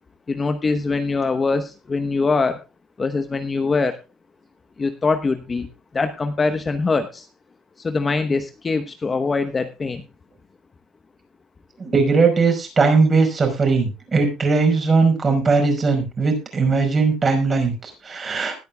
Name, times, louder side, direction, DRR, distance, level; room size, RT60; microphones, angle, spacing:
voice 1, 0.3-2.6 3.0-4.0 4.8-5.7 5.9-7.3 7.8-10.0, left 4 dB, 20° left, 8 dB, 1.1 m, -23 dB
voice 2, 11.8-18.6, right 4 dB, 25° right, 4 dB, 5.3 m, -19 dB
20.5 x 9.3 x 2.3 m, 0.27 s
cardioid pair, 135°, 0 cm